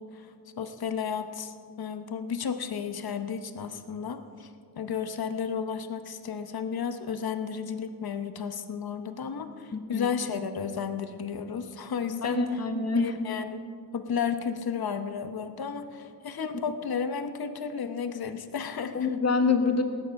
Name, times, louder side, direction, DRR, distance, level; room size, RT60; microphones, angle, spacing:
voice 1, 0.0-4.5 4.7-12.6 12.9-13.7 13.9-19.1, left 6 dB, 65° left, 9 dB, 0.9 m, -33 dB
voice 2, 9.7-10.1 12.2-13.1 16.4-16.5 18.9-19.8, left 4 dB, 40° left, 6 dB, 1.2 m, -26 dB
18.5 x 9.5 x 5.7 m, 2.3 s
wide cardioid pair, 150°, 40 cm